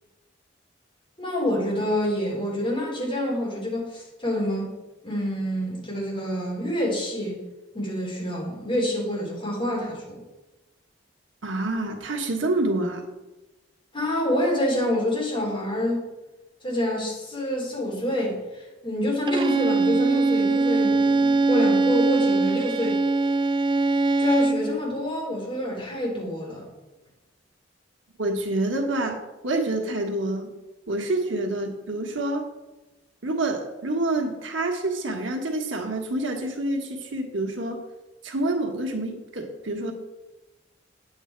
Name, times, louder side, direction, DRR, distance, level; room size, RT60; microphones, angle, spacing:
voice 1, 1.2-4.8 5.0-7.4 7.7-10.2 13.9-16.1 16.6-23.0 24.2-26.6, left 1 dB, 30° left, -4 dB, 3.9 m, -27 dB
voice 2, 11.4-13.1 28.2-30.5 30.9-32.5 33.2-37.8 38.2-39.9, right 2 dB, 85° right, 3 dB, 1.4 m, -27 dB
Bowed string instrument, 19.3-24.7, right 3 dB, 25° right, 0.4 m, -22 dB
9.6 x 8.0 x 4.5 m, 1.1 s
head